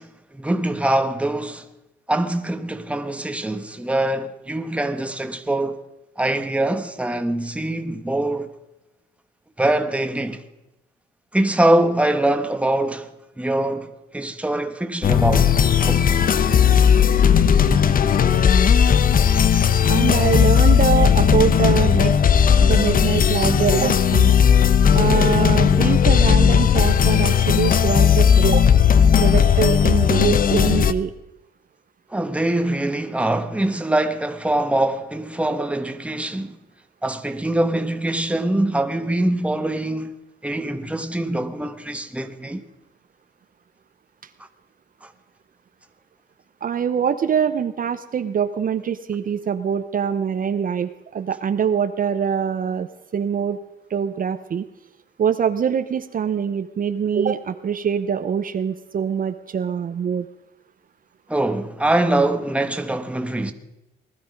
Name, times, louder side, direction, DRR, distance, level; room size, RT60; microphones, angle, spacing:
voice 1, 0.0-1.7 2.1-5.8 6.2-8.5 9.6-10.4 11.3-13.1 13.4-15.5 15.8-16.1 32.1-36.6 37.0-40.2 40.4-42.6 45.0-45.1 61.3-63.5, right 1 dB, 5° right, 1.1 m, -23 dB
sound 1, 15.0-30.9, left 7 dB, 45° left, 0.7 m, -16 dB
voice 2, 19.8-22.2 22.6-24.3 24.9-28.7 29.0-31.1 46.6-52.9 53.1-53.6 53.9-54.6 55.2-60.3, right 7 dB, 45° right, 0.7 m, -23 dB
19.5 x 12.0 x 5.2 m
cardioid pair, 90°, 20 cm